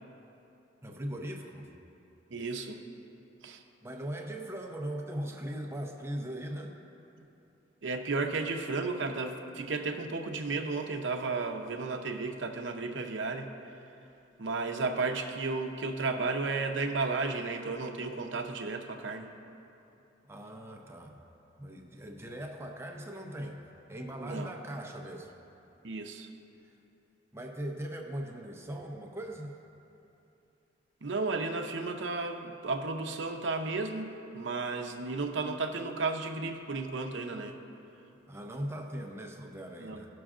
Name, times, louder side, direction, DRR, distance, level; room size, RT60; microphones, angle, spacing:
voice 1, 0.8-1.7 3.8-6.7 20.3-21.2 21.6-23.6 23.9-25.3 27.3-29.5 38.3-40.1, right 1 dB, 15° right, 1 dB, 0.6 m, -39 dB
voice 2, 2.3-2.8 3.4-3.6 7.2-7.3 7.8-13.7 14.4-19.3 24.2-24.5 25.8-26.3 31.0-37.6 39.8-40.0, right 3 dB, 70° right, 4 dB, 0.7 m, -33 dB
16.5 x 6.2 x 2.5 m, 2.8 s
head